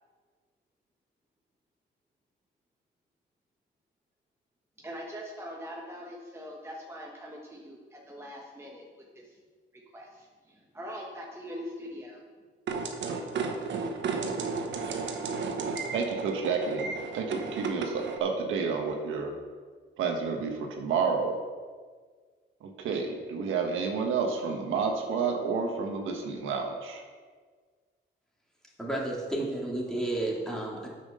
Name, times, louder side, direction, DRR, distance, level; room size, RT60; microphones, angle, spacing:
voice 1, 4.8-8.9 9.1-9.4 9.7-12.2, equal, 15° right, -2 dB, 1.4 m, -42 dB
sound 1, 12.7-18.2, right 4 dB, 65° right, 1.2 m, -33 dB
voice 2, 15.6-19.3 20.0-21.4 22.6-27.0, right 5 dB, 85° right, 3 dB, 1.3 m, -30 dB
voice 3, 28.8-30.9, right 1 dB, 5° left, -3 dB, 2.8 m, -31 dB
8.8 x 6.1 x 6.5 m, 1.5 s
cardioid pair, 90°, 20 cm